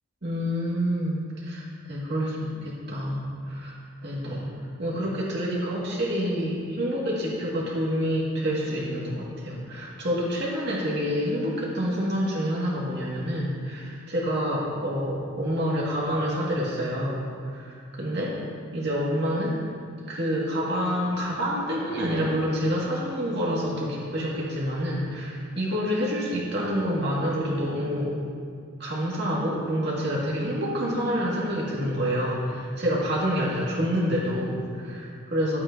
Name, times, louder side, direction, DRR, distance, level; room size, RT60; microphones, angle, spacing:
voice 1, 0.2-3.8 4.0-4.5 4.8-18.3 18.7-19.5 20.1-28.2 28.8-35.6, equal, 50° right, -6 dB, 2.0 m, -27 dB
11.0 x 8.5 x 2.8 m, 2.2 s
head